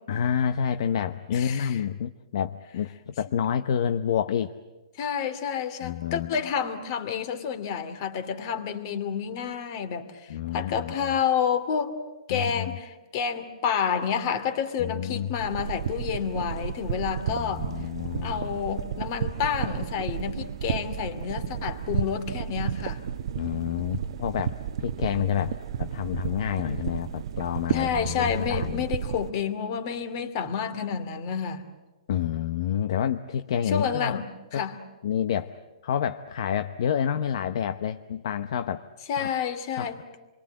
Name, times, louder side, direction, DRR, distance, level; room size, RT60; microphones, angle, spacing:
voice 1, 0.1-4.5 5.8-6.4 10.3-11.1 12.3-12.8 14.8-15.3 17.3-18.5 23.4-24.5 24.8-28.8 32.1-34.2 34.5-34.7 35.0-35.5 35.8-38.9 39.2-39.3 39.8-39.9, left 9 dB, 55° left, 10 dB, 0.9 m, -29 dB
voice 2, 1.3-1.8 5.0-11.9 12.3-17.7 18.2-23.0 27.7-31.6 33.7-34.2 34.5-34.8 39.1-40.0, left 7 dB, 40° left, 10 dB, 2.5 m, -29 dB
sound 1, 15.4-29.3, right 8 dB, 55° right, 0.9 m, -32 dB
28.0 x 22.5 x 8.9 m, 1.1 s
hypercardioid pair, 155°, 3 cm